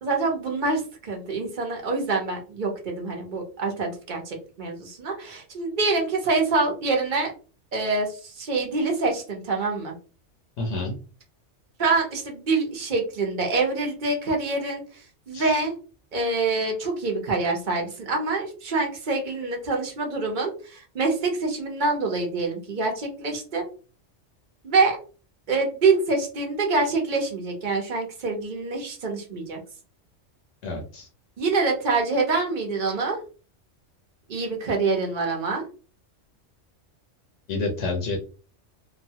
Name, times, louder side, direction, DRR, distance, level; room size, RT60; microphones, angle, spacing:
voice 1, 0.0-7.3 7.7-9.9 11.8-15.7 16.1-23.7 24.6-25.0 25.5-29.6 31.4-33.2 34.3-35.6, right 3 dB, 45° right, 1 dB, 0.9 m, -25 dB
voice 2, 10.6-10.9 15.3-15.6 30.6-31.1 37.5-38.2, left 3 dB, 80° left, 1 dB, 1.1 m, -29 dB
3.0 x 2.2 x 2.8 m, 0.36 s
omnidirectional pair, 1.3 m